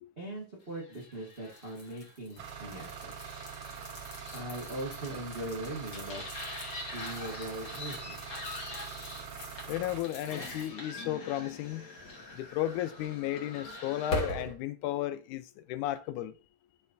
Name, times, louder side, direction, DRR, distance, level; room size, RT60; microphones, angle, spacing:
voice 1, 0.2-3.1 4.3-6.2 6.9-8.2, right 1 dB, 40° right, 0.8 m, -40 dB
sound 1, 0.9-14.5, left 2 dB, 40° left, 1.5 m, -42 dB
sound 2, 2.4-10.0, right 7 dB, 90° right, 2.4 m, -44 dB
voice 2, 9.7-11.9 12.4-16.3, left 13 dB, 80° left, 2.0 m, -34 dB
12.0 x 4.2 x 2.6 m
omnidirectional pair, 3.6 m